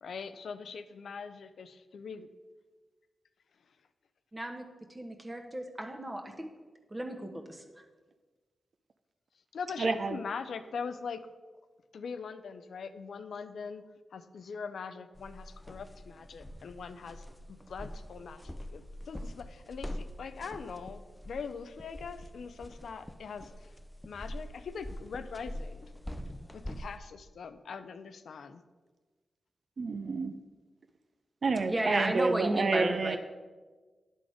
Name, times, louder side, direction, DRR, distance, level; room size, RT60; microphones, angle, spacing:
voice 1, 0.0-2.3 9.5-11.3 11.9-13.8 14.1-17.2 17.5-23.5 24.0-25.8 26.5-28.6, left 5 dB, 80° left, 11 dB, 0.4 m, -42 dB
voice 2, 4.3-6.5 6.9-7.6 31.7-33.2, right 1 dB, 25° right, 3 dB, 1.2 m, -34 dB
voice 3, 9.8-10.2 29.8-30.3 31.4-33.2, right 4 dB, 65° right, 9 dB, 0.5 m, -29 dB
sound 1, 15.1-27.0, equal, 15° left, 0.5 m, -44 dB
11.0 x 3.9 x 4.9 m, 1.3 s
cardioid pair, 50°, 0 cm